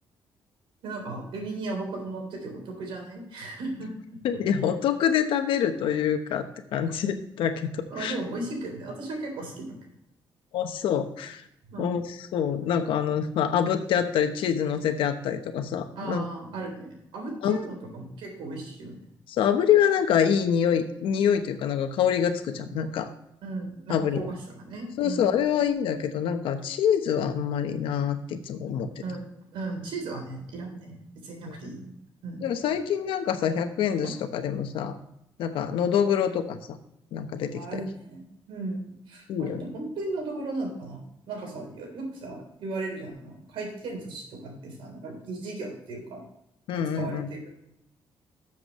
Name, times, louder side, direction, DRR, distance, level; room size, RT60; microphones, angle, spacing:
voice 1, 0.8-4.2 7.9-9.7 11.7-12.0 16.0-19.1 23.4-25.3 29.0-29.3 29.5-31.9 32.2-32.4 34.0-34.1 37.5-46.2 46.7-47.5, right 2 dB, 90° right, 2 dB, 3.6 m, -36 dB
voice 2, 4.2-8.1 10.5-11.4 11.8-12.0 12.3-16.2 17.4-17.6 19.3-23.1 23.9-24.2 25.0-28.9 31.5-31.6 32.4-35.0 35.4-36.8 37.1-37.8 39.3-39.6 46.7-47.3, left 8 dB, 85° left, 8 dB, 1.0 m, -26 dB
13.0 x 7.2 x 3.1 m, 0.80 s
cardioid pair, 110°, 9 cm